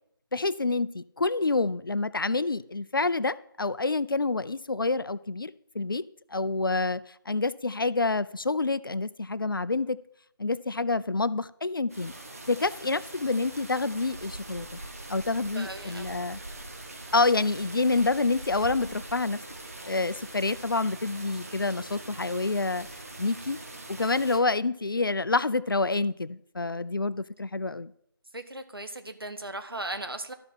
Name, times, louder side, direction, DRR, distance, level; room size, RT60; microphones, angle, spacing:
voice 1, 0.3-6.1 6.3-10.0 10.4-12.1 12.5-14.8 15.1-16.4 17.1-19.4 19.8-22.9 23.2-23.6 23.9-27.9, left 3 dB, 60° left, 17 dB, 0.4 m, -28 dB
sound 1, 11.9-24.4, right 2 dB, 40° right, 1.2 m, -42 dB
voice 2, 15.5-16.2 24.0-24.1 28.3-30.3, right 2 dB, 75° right, 8 dB, 1.1 m, -37 dB
13.0 x 5.4 x 4.2 m, 0.74 s
figure-of-eight pair, 165°, 13 cm